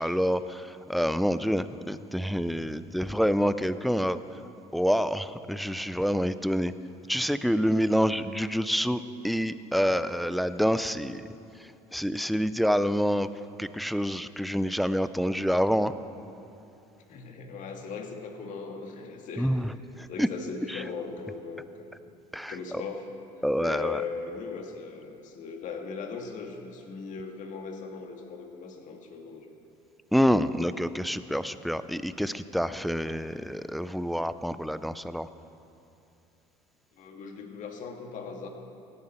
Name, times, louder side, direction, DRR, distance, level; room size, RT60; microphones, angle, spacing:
voice 1, 0.0-4.4 4.7-6.7 7.1-11.3 11.6-13.3 13.6-15.9 19.4-20.3 20.7-20.8 22.3-22.8 23.4-24.0 30.1-35.3, equal, ahead, 13 dB, 0.5 m, -27 dB
voice 2, 17.1-19.6 20.1-22.0 22.5-23.1 23.6-29.5 36.9-38.5, left 5 dB, 60° left, 3 dB, 1.8 m, -38 dB
17.0 x 10.5 x 4.3 m, 2.8 s
supercardioid pair, 90°, 15 cm